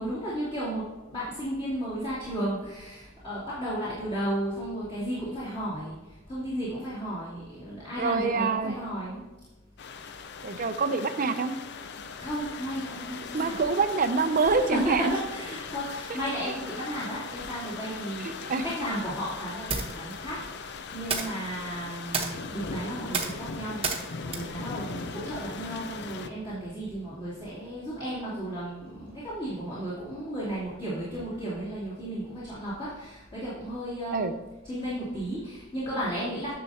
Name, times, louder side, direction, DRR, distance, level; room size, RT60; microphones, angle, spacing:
voice 1, 0.0-9.3 12.2-13.6 14.4-34.4 34.6-36.5, right 1 dB, 25° left, -12 dB, 2.7 m, -34 dB
voice 2, 8.0-8.8 10.4-11.5 13.3-15.1 16.4-16.5 18.5-18.6 34.1-34.3, right 4 dB, 45° right, 9 dB, 0.6 m, -26 dB
sound 1, 9.8-26.3, left 5 dB, 60° left, 0.5 m, -39 dB
sound 2, 18.5-25.8, right 4 dB, 30° right, 1.1 m, -36 dB
10.0 x 6.7 x 2.8 m, 1.1 s
head